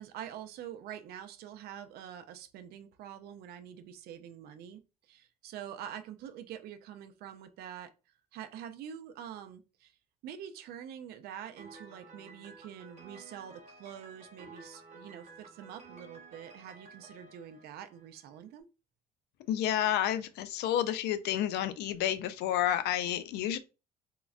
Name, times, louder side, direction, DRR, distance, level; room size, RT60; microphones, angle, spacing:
voice 1, 0.0-4.8 5.1-7.9 8.3-9.9 10.2-18.7, right 9 dB, 70° right, 0.4 m, -46 dB
Piano, 11.6-18.4, right 3 dB, 40° right, 0.9 m, -53 dB
voice 2, 19.5-23.6, left 11 dB, 75° left, 0.4 m, -30 dB
3.7 x 2.0 x 2.4 m
cardioid pair, 110°, 17 cm